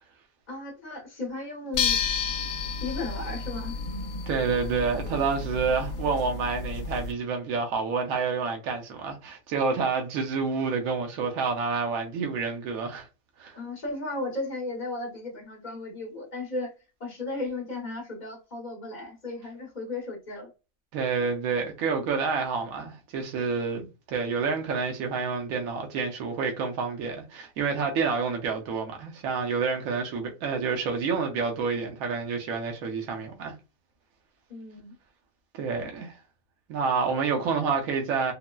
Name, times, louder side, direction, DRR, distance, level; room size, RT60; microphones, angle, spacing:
voice 1, 0.5-2.0 2.8-3.8 13.5-16.7 17.0-20.5 34.5-34.9, left 2 dB, 35° left, 0.9 m, -35 dB
sound 1, 1.7-7.1, left 5 dB, 70° left, 0.9 m, -31 dB
voice 2, 4.3-13.1 13.4-13.6 20.9-33.5 35.5-36.1 36.7-38.3, right 5 dB, 75° right, 1.1 m, -28 dB
3.7 x 2.0 x 2.2 m
omnidirectional pair, 1.5 m